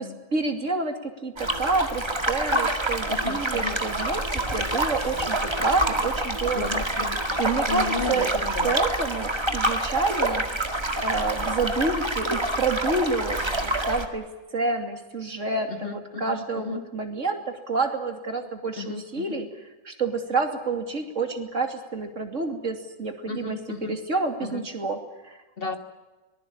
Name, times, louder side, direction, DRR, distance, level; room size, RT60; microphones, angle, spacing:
voice 1, 0.3-6.8 7.4-8.3 8.6-10.4 11.0-14.2 14.5-17.4 17.7-19.5 19.8-25.0 25.2-25.4, right 3 dB, 45° right, 5 dB, 3.1 m, -28 dB
sound 1, 1.4-14.1, right 1 dB, 15° right, 1.9 m, -27 dB
voice 2, 3.1-3.8 6.5-7.2 7.7-8.8 15.7-16.9 18.8-19.4 23.3-24.0 24.4-24.7 25.6-25.8, left 5 dB, 30° left, 7 dB, 2.1 m, -34 dB
24.0 x 20.5 x 8.8 m, 1.2 s
omnidirectional pair, 1.9 m